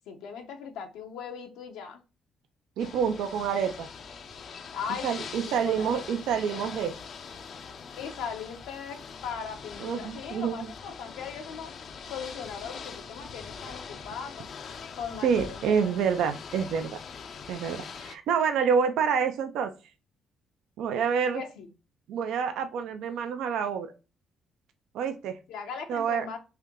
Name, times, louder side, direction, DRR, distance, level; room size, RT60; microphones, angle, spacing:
voice 1, 0.1-2.0 4.7-5.3 5.6-6.0 8.0-11.7 12.1-14.5 14.9-15.9 21.3-21.7 25.5-26.4, left 6 dB, 85° left, 5 dB, 0.9 m, -39 dB
Ocean / Boat Water vehicle, 2.8-18.2, left 6 dB, 55° left, 0.5 m, -43 dB
voice 2, 2.8-3.9 5.0-7.0 9.8-10.7 15.2-17.0 17.5-19.7 20.8-21.4 22.1-23.9 24.9-25.4 25.9-26.2, right 7 dB, 80° right, 8 dB, 0.5 m, -27 dB
3.3 x 2.8 x 3.6 m, 0.30 s
cardioid pair, 85°, 0 cm